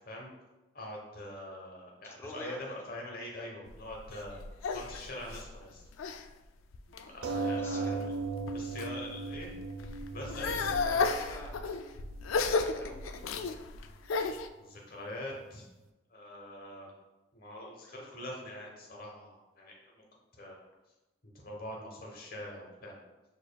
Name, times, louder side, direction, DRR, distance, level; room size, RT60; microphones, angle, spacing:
voice 1, 0.7-4.3 4.7-5.8 7.1-8.1 8.5-9.5 10.1-11.0 14.6-15.7 16.1-16.9 17.3-20.0 20.4-20.6 21.3-23.0, left 1 dB, 50° left, -1 dB, 1.0 m, -43 dB
voice 2, 2.0-2.6 7.0-7.2 7.6-8.0 10.5-11.7 12.4-13.6, left 1 dB, 10° left, -1 dB, 0.6 m, -48 dB
sound 1, 3.7-6.3 6.7-7.3 7.9-8.9 9.3-14.5, left 4 dB, 90° left, 0.3 m, -33 dB
sound 2, 7.2-12.2 13.0-13.1 13.4-13.5, right 3 dB, 85° right, 0.4 m, -37 dB
6.5 x 3.0 x 2.2 m, 1.1 s
head